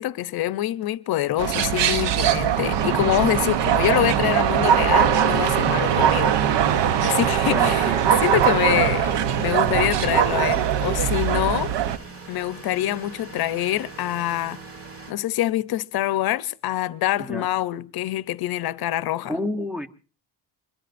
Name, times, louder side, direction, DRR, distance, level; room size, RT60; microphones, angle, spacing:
voice 1, 0.0-6.3 7.0-11.7 12.3-14.6 15.1-19.4, left 14 dB, 60° left, 0.7 m, -25 dB
sound 1, 1.4-12.0, right 9 dB, 80° right, 0.9 m, -21 dB
voice 2, 7.5-8.0 17.2-17.5 19.3-19.9, left 1 dB, 5° right, 0.9 m, -29 dB
sound 2, 7.6-15.1, right 3 dB, 35° right, 1.7 m, -42 dB
26.0 x 21.0 x 2.6 m
cardioid pair, 135°, 42 cm